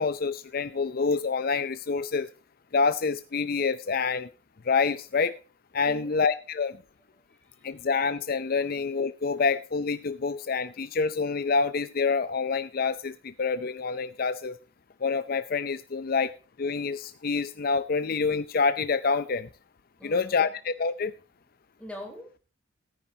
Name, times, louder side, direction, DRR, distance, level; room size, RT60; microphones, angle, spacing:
voice 1, 0.0-2.3 2.7-4.3 4.6-5.4 5.7-6.8 7.6-14.6 15.0-16.3 16.6-19.5 20.0-21.1, left 4 dB, 50° left, 13 dB, 0.5 m, -27 dB
voice 2, 5.8-6.2 7.4-7.6 20.0-20.5 21.8-22.4, equal, 5° left, 1 dB, 3.9 m, -43 dB
17.5 x 9.9 x 2.8 m, 0.33 s
head